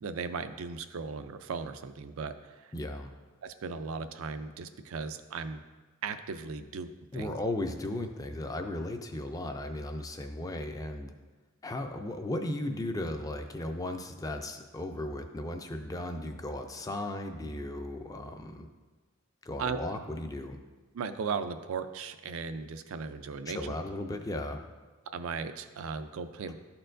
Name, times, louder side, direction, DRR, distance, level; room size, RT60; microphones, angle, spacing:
voice 1, 0.0-2.7 3.4-5.6 6.0-7.4 19.6-19.8 20.9-23.7 25.1-26.5, right 5 dB, 80° right, 10 dB, 0.4 m, -37 dB
voice 2, 2.7-3.1 7.1-11.1 11.6-18.7 19.4-20.6 23.5-24.6, left 1 dB, 15° left, 6 dB, 0.4 m, -36 dB
11.5 x 4.4 x 2.5 m, 1.3 s
head